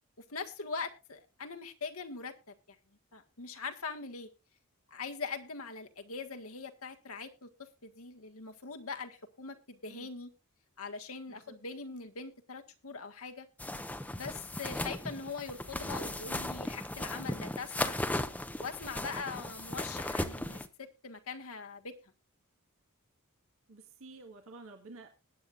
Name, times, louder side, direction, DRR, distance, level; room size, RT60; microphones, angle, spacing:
voice 1, 0.3-2.3 2.7-2.8 3.1-4.3 4.9-10.3 10.8-13.5 14.1-18.0 18.6-21.9, left 4 dB, 75° left, 6 dB, 1.6 m, -42 dB
sound 1, 13.6-20.7, left 1 dB, 5° left, 0.7 m, -37 dB
voice 2, 19.0-19.3 23.7-25.1, right 3 dB, 65° right, 4 dB, 1.7 m, -51 dB
20.5 x 9.6 x 2.5 m, 0.27 s
head